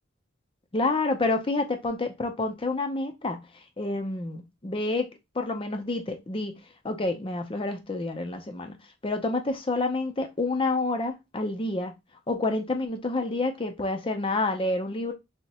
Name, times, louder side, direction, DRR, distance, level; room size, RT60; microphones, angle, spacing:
voice 1, 0.7-3.4 3.8-5.1 5.3-6.5 6.8-8.8 9.0-11.9 12.3-15.1, left 2 dB, 25° left, 0.5 m, -28 dB
2.8 x 2.1 x 4.0 m
head